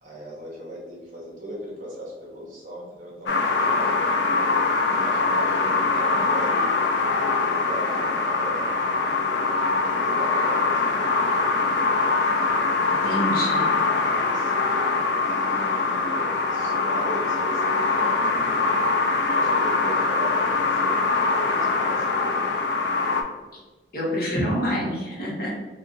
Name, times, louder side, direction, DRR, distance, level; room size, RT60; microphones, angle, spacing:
voice 1, 0.0-4.3 4.9-6.7 7.5-8.6 9.8-11.2 14.0-14.5 15.3-18.4 19.3-20.9 21.5-22.7, equal, 50° right, -5 dB, 0.8 m, -38 dB
sound 1, 3.3-23.2, left 3 dB, 80° left, 0.4 m, -23 dB
voice 2, 13.0-13.7 23.9-25.5, equal, 55° left, -5 dB, 1.1 m, -26 dB
2.7 x 2.5 x 3.8 m, 1.2 s
head